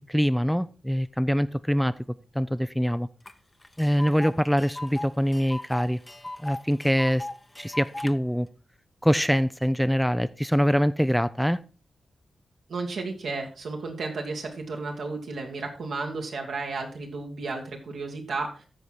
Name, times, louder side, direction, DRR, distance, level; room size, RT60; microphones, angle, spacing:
voice 1, 0.1-1.9 2.3-3.1 3.8-6.0 6.4-7.3 7.6-8.5 9.0-11.6, equal, ahead, 13 dB, 0.5 m, -24 dB
Tick, 3.3-3.4 3.6-8.1, left 1 dB, 25° left, 0.9 m, -38 dB
voice 2, 12.7-18.6, right 3 dB, 75° right, 2 dB, 2.0 m, -33 dB
13.5 x 4.8 x 4.4 m, 0.35 s
supercardioid pair, 40°, 0 cm